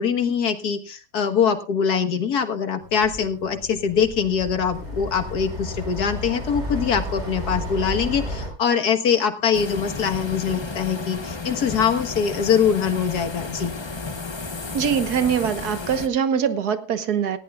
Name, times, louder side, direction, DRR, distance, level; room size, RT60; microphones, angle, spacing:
voice 1, 0.0-13.7, left 7 dB, 80° left, 1.9 m, -23 dB
sound 1, 2.8-8.5, equal, 45° right, 6.2 m, -32 dB
sound 2, 9.5-16.1, left 4 dB, 25° left, 0.7 m, -33 dB
voice 2, 14.7-17.4, right 7 dB, 85° right, 1.7 m, -23 dB
18.5 x 15.5 x 2.4 m
omnidirectional pair, 1.6 m